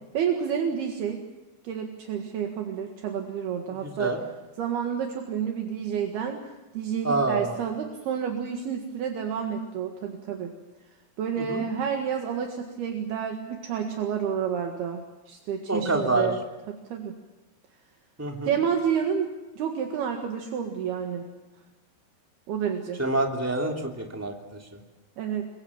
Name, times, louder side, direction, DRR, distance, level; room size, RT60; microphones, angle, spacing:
voice 1, 0.1-1.2 1.6-4.2 4.6-6.4 6.7-10.5 11.2-16.4 16.7-17.1 18.5-21.3 22.5-23.0 25.2-25.5, right 7 dB, 70° right, 3 dB, 3.7 m, -29 dB
voice 2, 3.8-4.2 7.0-7.5 11.4-11.6 15.7-16.3 18.2-18.5 23.0-24.3, right 2 dB, 5° right, 2 dB, 2.1 m, -26 dB
27.0 x 23.0 x 7.4 m, 1.1 s
omnidirectional pair, 4.9 m